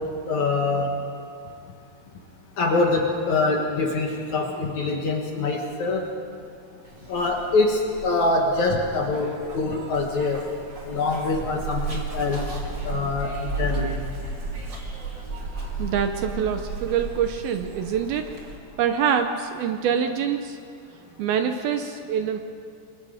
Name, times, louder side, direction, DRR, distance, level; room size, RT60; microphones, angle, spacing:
voice 1, 0.3-0.9 2.6-6.0 7.1-10.4 10.8-12.4 12.9-14.0, left 3 dB, 55° left, 1 dB, 2.3 m, -24 dB
Zipper (clothing), 6.8-18.6, right 3 dB, 30° right, 2.8 m, -34 dB
voice 2, 15.8-18.3 18.8-20.6 21.2-22.4, right 8 dB, 75° right, 6 dB, 2.4 m, -25 dB
29.5 x 22.5 x 5.1 m, 2.5 s
omnidirectional pair, 4.9 m